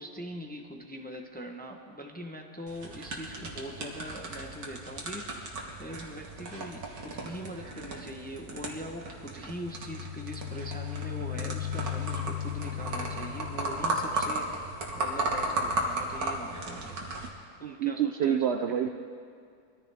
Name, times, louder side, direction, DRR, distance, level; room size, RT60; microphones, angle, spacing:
voice 1, 0.0-17.0 17.6-18.7, equal, 10° left, 2 dB, 0.7 m, -42 dB
sound 1, 2.7-17.3, right 2 dB, 80° right, 2.0 m, -35 dB
sound 2, 9.6-14.2, left 11 dB, 65° left, 0.8 m, -37 dB
voice 2, 17.6-18.9, right 9 dB, 65° right, 6 dB, 0.6 m, -27 dB
22.5 x 14.0 x 3.5 m, 2.3 s
omnidirectional pair, 1.5 m